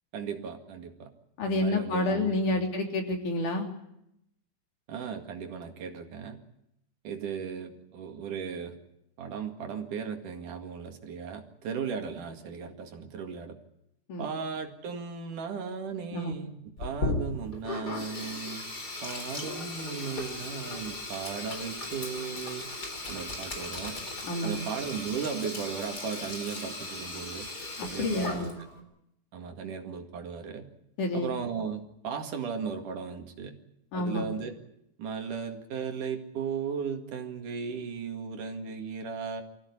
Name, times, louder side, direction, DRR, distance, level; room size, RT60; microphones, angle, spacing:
voice 1, 0.1-1.1 1.4-2.7 4.9-6.4 7.0-8.8 9.2-13.6 14.2-18.7 19.0-22.7 23.1-24.0 24.4-27.5 27.9-28.5 29.3-30.7 31.1-33.6 33.9-34.5 35.0-39.4, right 6 dB, 80° right, 5 dB, 3.6 m, -36 dB
voice 2, 1.4-3.7 14.1-14.3 16.1-16.3 24.2-24.6 27.8-28.5 31.0-31.3 33.9-34.3, left 2 dB, 75° left, 2 dB, 4.7 m, -29 dB
Sink (filling or washing), 16.8-28.8, left 2 dB, 30° left, 4.2 m, -37 dB
25.0 x 16.0 x 9.8 m, 0.79 s
omnidirectional pair, 3.6 m